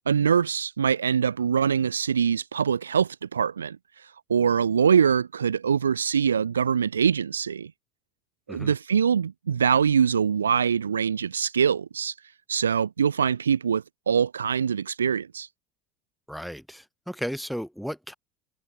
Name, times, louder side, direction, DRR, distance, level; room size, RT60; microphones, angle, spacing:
voice 1, 0.1-7.7 8.5-12.1 12.5-15.5, right 7 dB, 85° right, 0.7 m, -23 dB
voice 2, 16.3-18.1, equal, ahead, 3.2 m, -34 dB
figure-of-eight pair, 70°, 0 cm